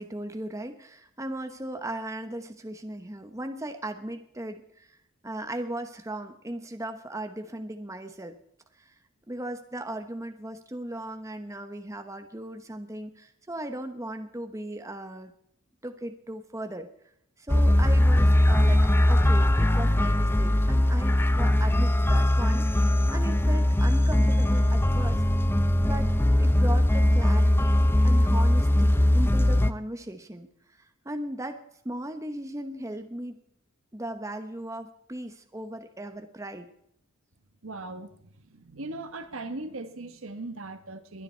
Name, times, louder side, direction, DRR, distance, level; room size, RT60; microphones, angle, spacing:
voice 1, 0.0-5.0 5.2-8.3 8.8-8.9 9.3-15.3 15.8-16.9 17.4-18.8 19.1-25.2 25.8-26.1 26.4-33.3 33.9-36.7, right 1 dB, 15° right, 6 dB, 1.0 m, -37 dB
sound 1, 17.5-29.7, left 1 dB, 10° left, 0.5 m, -21 dB
voice 2, 37.6-41.2, right 2 dB, 65° right, 9 dB, 1.4 m, -39 dB
21.5 x 9.7 x 4.5 m, 0.72 s
head